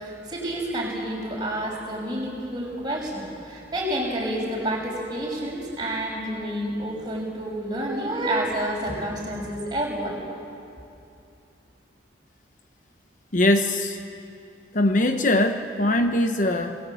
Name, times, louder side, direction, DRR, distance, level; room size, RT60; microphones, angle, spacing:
voice 1, 0.0-10.2, right 1 dB, 20° right, -2 dB, 6.1 m, -29 dB
voice 2, 13.3-14.0 14.7-16.8, left 1 dB, 40° left, 6 dB, 0.9 m, -21 dB
27.0 x 20.0 x 8.5 m, 2.7 s
head